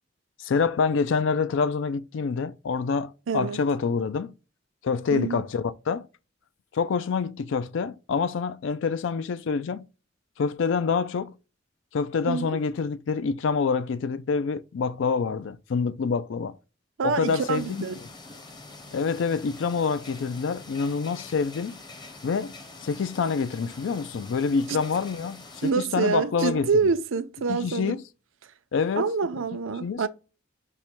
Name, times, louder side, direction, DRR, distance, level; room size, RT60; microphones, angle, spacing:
voice 1, 0.4-4.3 4.8-6.1 6.7-9.9 10.4-11.4 11.9-16.6 17.0-17.8 18.9-21.8 22.2-22.5 22.8-26.7 27.5-28.0 28.7-29.1 29.8-30.1, left 5 dB, 65° left, 0.4 m, -26 dB
voice 2, 3.3-3.6 5.1-5.4 12.3-12.6 17.0-18.0 24.7-24.8 25.6-28.0 29.0-30.1, right 5 dB, 80° right, 0.5 m, -26 dB
sound 1, 17.2-25.7, left 3 dB, 20° left, 0.8 m, -45 dB
5.4 x 2.2 x 4.5 m
head